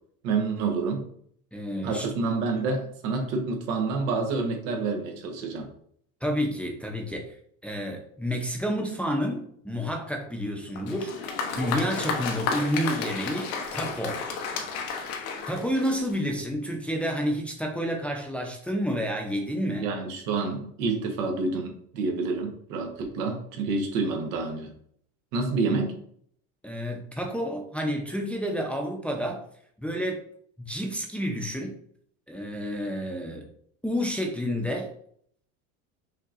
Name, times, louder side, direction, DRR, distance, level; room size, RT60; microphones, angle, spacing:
voice 1, 0.2-1.0 1.8-5.7 19.8-24.7 25.3-26.0, right 4 dB, 80° right, 3 dB, 1.2 m, -28 dB
voice 2, 1.5-2.1 6.2-7.4 7.6-14.2 15.5-19.9 26.6-29.4 29.8-30.2 30.6-31.8 32.3-33.5 33.8-34.9, equal, 5° left, 1 dB, 0.6 m, -30 dB
Applause, 10.8-16.3, left 5 dB, 85° left, 1.0 m, -32 dB
5.5 x 2.9 x 2.5 m, 0.64 s
supercardioid pair, 110°, 40 cm